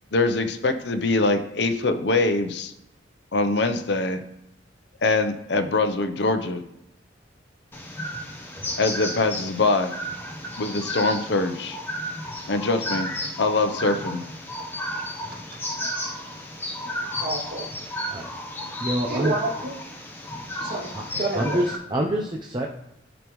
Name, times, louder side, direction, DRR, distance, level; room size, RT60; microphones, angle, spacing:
voice 1, 0.1-2.7 3.3-4.2 5.0-6.6 8.8-9.9 10.6-11.8 12.5-13.1 13.4-14.2, left 3 dB, 65° left, 7 dB, 0.7 m, -23 dB
sound 1, 7.7-21.8, equal, 10° left, 1.0 m, -33 dB
voice 2, 16.8-17.7 19.1-19.7 20.6-20.9 21.2-21.6, right 2 dB, 50° right, -4 dB, 2.4 m, -29 dB
voice 3, 18.8-19.3 20.9-21.0 21.3-22.7, equal, 25° right, 0 dB, 0.6 m, -26 dB
14.0 x 5.1 x 3.1 m, 0.85 s
head